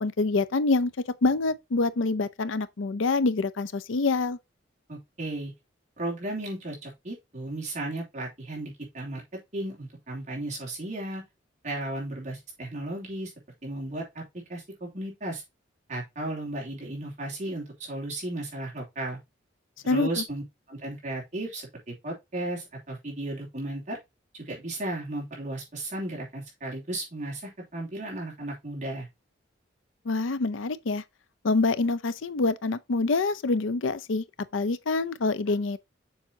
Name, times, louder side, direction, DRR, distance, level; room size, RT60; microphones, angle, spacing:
voice 1, 0.0-0.9 1.2-4.4 19.9-20.2 30.1-31.0 31.4-34.2 34.5-35.8, left 3 dB, 85° left, 0.6 m, -26 dB
voice 2, 4.9-5.5 6.0-9.2 9.5-11.2 11.6-13.3 13.6-14.2 14.5-15.4 15.9-19.2 19.8-24.0 24.3-29.1, right 1 dB, 40° right, 3.0 m, -35 dB
7.1 x 5.4 x 2.8 m
head